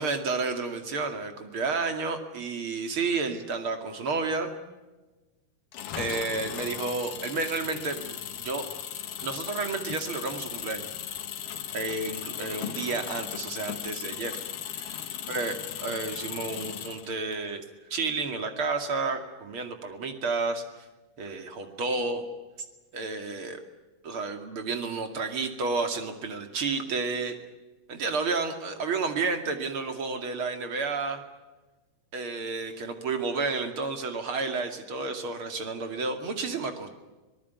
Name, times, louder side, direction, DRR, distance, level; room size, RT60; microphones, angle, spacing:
voice 1, 0.0-4.5 6.0-8.7 9.2-10.9 11.7-14.4 14.6-15.0 15.3-17.6 17.9-20.6 21.2-22.2 22.9-23.6 24.0-27.4 27.9-31.2 32.1-36.9, right 4 dB, 45° right, 6 dB, 2.9 m, -31 dB
Engine, 5.7-17.4, left 10 dB, 90° left, 3.2 m, -37 dB
25.5 x 19.0 x 9.4 m, 1.2 s
omnidirectional pair, 3.7 m